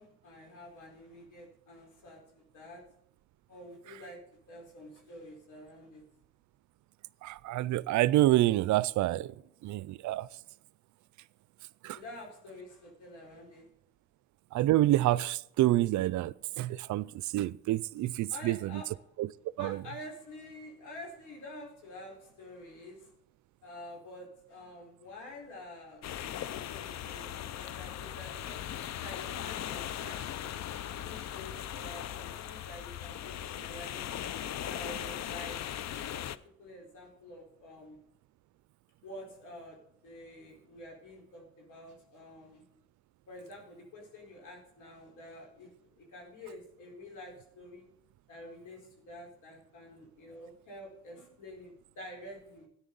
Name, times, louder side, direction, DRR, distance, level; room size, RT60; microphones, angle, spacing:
voice 1, 0.0-2.8 3.5-4.2 4.5-6.0 11.9-13.7 18.3-18.9 19.6-23.1 23.6-30.4 30.9-34.3 34.7-35.6 35.8-36.2 36.6-38.0 39.0-39.8 40.0-42.6 43.3-47.9 48.3-52.7, left 1 dB, 80° left, 4.4 m, -48 dB
voice 2, 7.2-9.3 9.6-10.3 11.8-12.0 14.5-18.8 19.2-19.3 19.6-19.8, right 15 dB, 75° right, 0.4 m, -27 dB
sound 1, 26.0-36.4, left 11 dB, 60° left, 0.6 m, -39 dB
13.5 x 10.0 x 3.9 m
cardioid pair, 90°, 30 cm